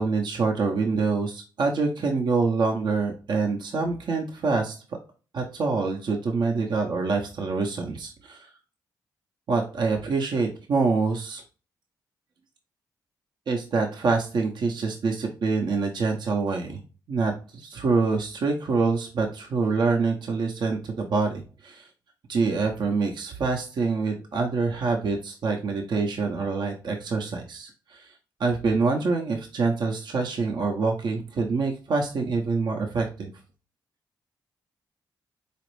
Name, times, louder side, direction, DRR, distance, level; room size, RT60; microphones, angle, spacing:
voice 1, 0.0-4.8 5.3-8.5 9.5-11.4 13.5-16.8 17.1-21.9 22.3-28.1 28.4-33.3, right 4 dB, 65° right, 2 dB, 0.6 m, -26 dB
4.0 x 2.5 x 3.0 m, 0.36 s
supercardioid pair, 50°, 8 cm